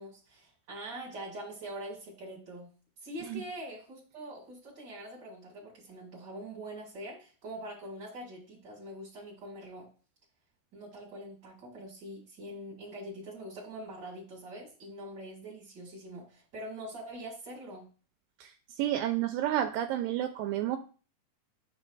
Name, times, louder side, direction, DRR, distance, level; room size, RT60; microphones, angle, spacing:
voice 1, 0.0-2.7 3.0-9.9 10.7-17.9, right 1 dB, 35° right, -4 dB, 2.0 m, -44 dB
voice 2, 18.8-20.8, right 12 dB, 80° right, 7 dB, 2.2 m, -30 dB
9.6 x 6.2 x 2.3 m, 0.37 s
omnidirectional pair, 4.1 m